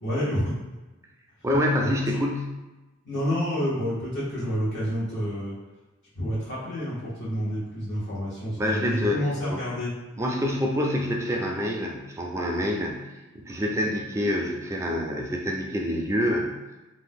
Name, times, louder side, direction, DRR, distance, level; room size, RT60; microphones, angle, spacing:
voice 1, 0.0-0.6 3.0-5.5 6.1-9.9, equal, 60° left, -9 dB, 1.1 m, -28 dB
voice 2, 1.4-2.5 8.6-9.2 9.5-9.6 10.2-13.1 13.3-16.8, left 1 dB, 15° right, 0 dB, 0.4 m, -26 dB
2.6 x 2.1 x 3.5 m, 1.1 s
head